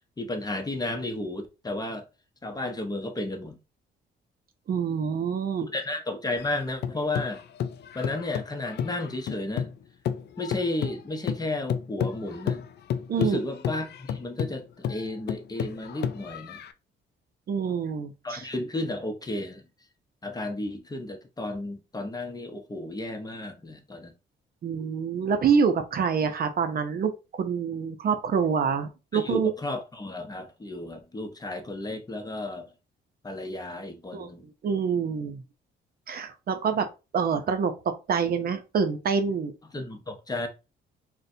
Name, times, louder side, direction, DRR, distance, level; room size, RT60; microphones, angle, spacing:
voice 1, 0.2-2.1 2.4-3.6 5.7-7.4 7.9-9.7 10.4-12.6 13.2-16.6 18.2-19.6 20.2-24.1 29.1-32.7 33.2-34.5 39.7-40.5, left 2 dB, 20° left, 0.7 m, -33 dB
voice 2, 4.7-5.7 13.1-13.4 17.5-18.4 24.6-29.5 34.1-34.3 34.6-35.4 36.1-36.9 37.1-37.7 38.1-39.5, right 6 dB, 50° right, 0.5 m, -26 dB
sound 1, 6.4-9.8 10.0-16.7, left 8 dB, 60° left, 0.4 m, -32 dB
3.9 x 2.1 x 2.7 m
cardioid pair, 90°, 20 cm